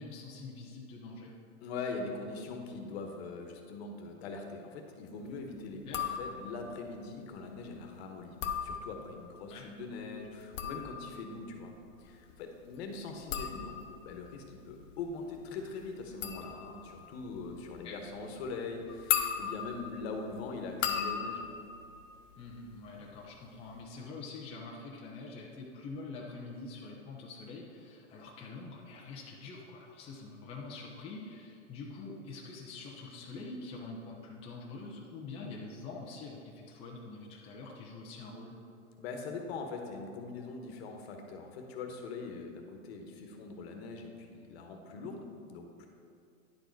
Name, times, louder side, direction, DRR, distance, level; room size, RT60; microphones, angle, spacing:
voice 1, 0.0-1.3 5.9-6.0 9.5-9.7 17.8-18.0 22.4-38.5, left 3 dB, 15° left, -3 dB, 0.6 m, -45 dB
voice 2, 1.6-8.4 8.6-11.7 12.0-13.8 14.0-21.5 39.0-45.9, left 4 dB, 50° left, 4 dB, 1.2 m, -42 dB
sound 1, 5.8-6.7 8.2-9.3 10.3-23.0 23.3-23.8, left 8 dB, 70° left, 0.9 m, -38 dB
10.0 x 4.8 x 4.6 m, 2.4 s
hypercardioid pair, 140°, 39 cm